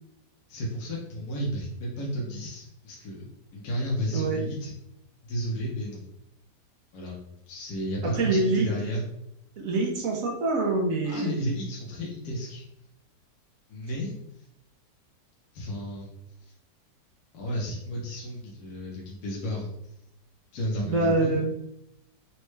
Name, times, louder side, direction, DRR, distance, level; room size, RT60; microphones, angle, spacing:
voice 1, 0.5-4.7 5.3-6.1 6.9-7.2 7.5-9.0 11.0-12.6 13.7-14.1 15.5-16.1 16.4-16.5 17.3-19.7 20.5-21.4, equal, 65° left, -3 dB, 1.3 m, -32 dB
voice 2, 8.0-8.9 9.6-11.4 20.8-21.5, right 3 dB, 60° right, -1 dB, 1.1 m, -26 dB
4.3 x 2.3 x 3.2 m, 0.80 s
omnidirectional pair, 1.9 m